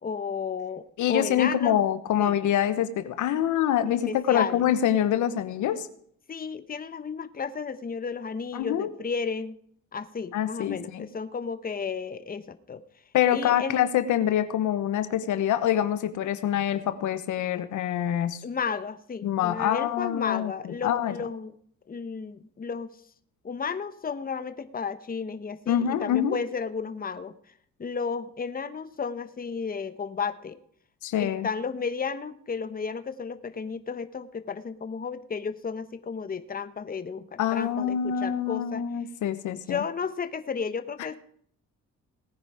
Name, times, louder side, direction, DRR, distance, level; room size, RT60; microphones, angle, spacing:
voice 1, 0.0-1.8 2.2-2.4 4.0-4.7 6.3-9.6 9.9-12.8 13.3-13.8 18.4-21.5 21.9-22.9 23.4-27.3 27.8-30.6 31.2-38.8 39.7-41.2, left 5 dB, 30° left, 12 dB, 1.1 m, -33 dB
voice 2, 1.0-5.9 8.5-8.9 10.3-11.1 13.1-18.4 19.2-21.1 25.7-26.4 31.0-31.5 37.4-39.8, left 10 dB, 80° left, 12 dB, 1.2 m, -25 dB
18.5 x 9.9 x 5.0 m, 0.64 s
cardioid pair, 90°, 30 cm